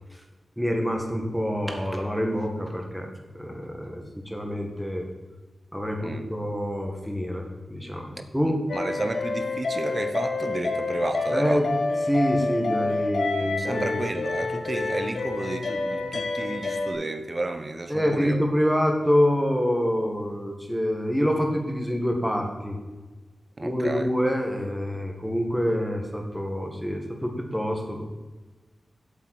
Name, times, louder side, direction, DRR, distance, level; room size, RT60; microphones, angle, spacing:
voice 1, 0.6-3.1 3.3-5.1 5.7-8.6 11.3-11.7 12.1-14.0 17.9-22.8 23.6-28.0, equal, ahead, 2 dB, 2.0 m, -26 dB
voice 2, 8.4-11.7 13.6-18.4 23.6-24.1, right 2 dB, 30° right, 7 dB, 1.1 m, -32 dB
sound 1, 8.7-16.9, left 3 dB, 65° left, 1.3 m, -28 dB
8.3 x 7.9 x 7.9 m, 1.2 s
wide cardioid pair, 120°, 0 cm